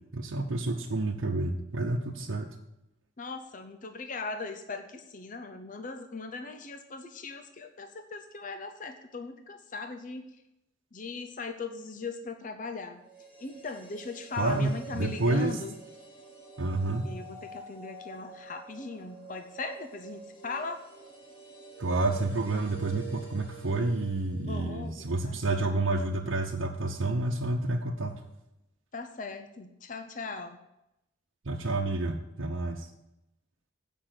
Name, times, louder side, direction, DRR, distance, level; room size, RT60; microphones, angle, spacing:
voice 1, 0.1-2.5 14.4-15.6 16.6-17.1 21.8-28.1 31.4-32.9, right 2 dB, 85° right, -1 dB, 0.9 m, -29 dB
voice 2, 3.2-10.2 10.9-13.0 13.4-15.7 17.0-20.8 24.4-25.6 28.9-30.6, left 4 dB, 40° left, 6 dB, 0.7 m, -39 dB
sound 1, 13.0-25.1 25.4-25.5, right 4 dB, 25° left, 2.4 m, -48 dB
8.9 x 5.5 x 7.7 m, 0.88 s
head